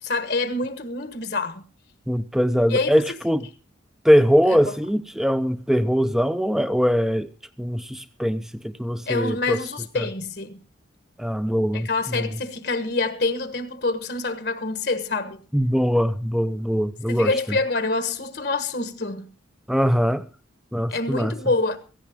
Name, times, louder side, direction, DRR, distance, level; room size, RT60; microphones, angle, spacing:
voice 1, 0.0-1.6 2.7-2.9 4.5-4.6 9.1-10.6 11.7-15.4 17.1-19.3 20.9-21.8, left 3 dB, 55° left, 1.3 m, -26 dB
voice 2, 2.1-3.5 4.0-7.3 7.6-9.6 9.9-10.1 11.2-12.4 15.5-17.6 19.7-20.2 20.7-21.3, equal, ahead, 0.7 m, -22 dB
16.5 x 15.0 x 3.6 m
head